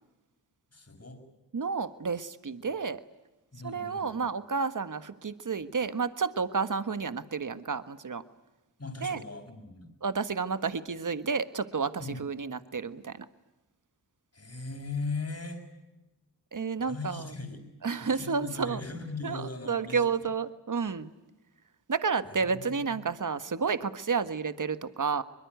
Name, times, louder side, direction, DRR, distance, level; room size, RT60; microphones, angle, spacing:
voice 1, 0.7-1.2 3.5-4.2 8.8-9.9 12.0-12.2 14.3-15.6 16.8-17.7 18.0-20.3 22.3-22.9, left 3 dB, 35° left, 5 dB, 6.1 m, -39 dB
voice 2, 1.5-3.0 3.6-8.2 9.0-9.2 10.0-13.3 16.5-17.3 17.8-18.8 19.2-21.1 21.9-25.2, right 5 dB, 45° right, 12 dB, 1.5 m, -31 dB
23.5 x 21.5 x 9.4 m, 1.0 s
cardioid pair, 45°, 41 cm